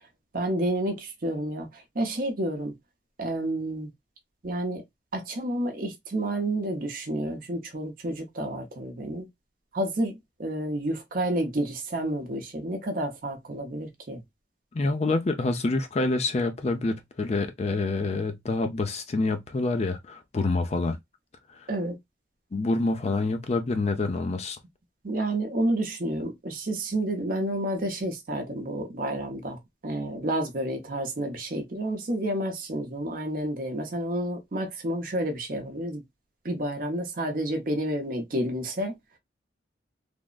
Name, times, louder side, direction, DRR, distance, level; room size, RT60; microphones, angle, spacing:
voice 1, 0.3-2.7 3.2-3.9 4.4-4.8 5.1-9.3 9.7-14.2 21.7-22.0 25.0-36.0 36.4-38.9, right 1 dB, 50° right, 0.7 m, -30 dB
voice 2, 14.7-21.0 21.6-21.7 22.5-24.6, left 3 dB, 35° left, 0.4 m, -27 dB
3.4 x 2.0 x 2.3 m
head